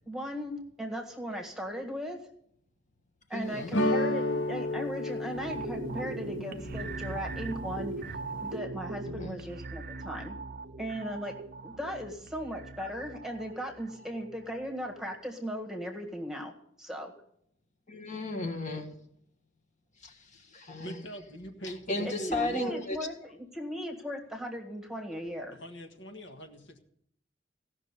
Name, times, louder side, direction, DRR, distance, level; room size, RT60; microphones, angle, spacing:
voice 1, 0.1-2.2 3.3-7.9 8.4-10.4 10.8-11.3 11.6-17.1 22.0-23.1 23.5-25.6, equal, 5° right, 2 dB, 1.7 m, -37 dB
voice 2, 3.3-3.7 9.1-9.4 17.9-18.9 20.0-21.0 21.6-23.0, left 2 dB, 40° left, 5 dB, 1.8 m, -35 dB
sound 1, 3.7-8.6, left 1 dB, 85° left, 1.1 m, -33 dB
sound 2, 5.3-14.7 15.0-15.1, right 3 dB, 55° right, 0.6 m, -40 dB
voice 3, 20.8-22.8 25.5-26.8, right 1 dB, 70° left, 4 dB, 1.6 m, -42 dB
16.0 x 6.1 x 8.3 m, 0.71 s
head